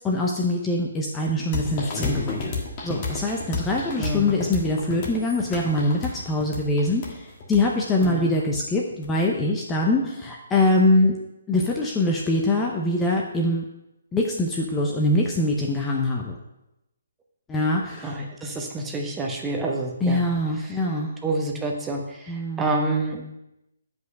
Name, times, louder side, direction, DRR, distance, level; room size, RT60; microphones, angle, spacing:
voice 1, 0.0-2.5 2.8-11.2 11.5-13.6 14.1-16.4 17.5-18.2 20.0-21.1 22.3-22.6, left 2 dB, 10° left, -1 dB, 0.8 m, -23 dB
sound 1, 1.5-9.1, left 4 dB, 35° left, 1.5 m, -32 dB
voice 2, 4.0-4.3 8.0-8.3 18.0-20.2 21.2-23.2, right 2 dB, 10° right, 0 dB, 1.0 m, -28 dB
7.9 x 5.3 x 5.3 m, 0.89 s
figure-of-eight pair, 140°, 0 cm